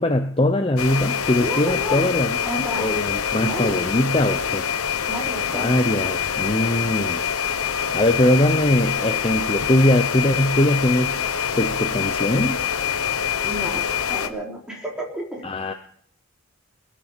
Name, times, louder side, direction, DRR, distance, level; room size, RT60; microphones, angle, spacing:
voice 1, 0.0-2.4 2.8-4.7 5.5-7.2 7.9-11.2 11.6-12.6 15.4-15.7, left 1 dB, 25° left, 7 dB, 0.7 m, -21 dB
sound 1, 0.8-14.3, left 7 dB, 80° left, 1.0 m, -25 dB
voice 2, 1.4-2.1 2.4-2.9 3.4-3.8 5.1-5.8 10.2-10.3 13.4-13.8 14.1-15.4, equal, 5° right, -3 dB, 4.1 m, -31 dB
21.0 x 7.5 x 6.7 m, 0.63 s
head